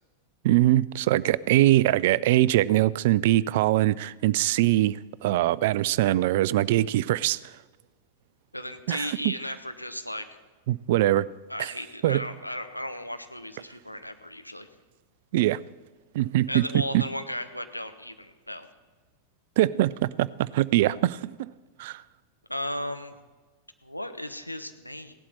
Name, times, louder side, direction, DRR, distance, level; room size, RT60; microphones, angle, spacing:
voice 1, 0.4-7.4 8.9-9.3 10.7-11.3 11.6-11.7 12.0-12.2 15.3-15.6 16.1-17.0 19.6-21.5 21.8-22.0, right 15 dB, 50° right, 0.3 m, -23 dB
voice 2, 8.5-10.3 11.5-14.7 16.5-18.7 22.5-23.1 23.8-25.1, left 1 dB, 90° left, 0.9 m, -35 dB
17.0 x 11.5 x 4.3 m
figure-of-eight pair, 90°, 0 cm